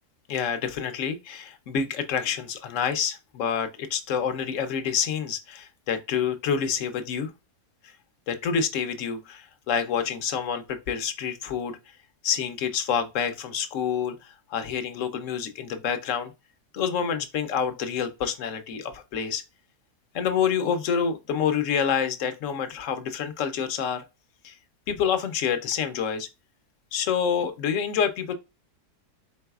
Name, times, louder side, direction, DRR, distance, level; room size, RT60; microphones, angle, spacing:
voice 1, 0.3-7.3 8.3-11.8 12.2-16.3 16.7-19.4 20.1-24.0 24.4-24.5 24.9-26.3 26.9-28.3, left 7 dB, 65° left, 0.9 m, -27 dB
4.7 x 3.7 x 2.3 m
omnidirectional pair, 1.7 m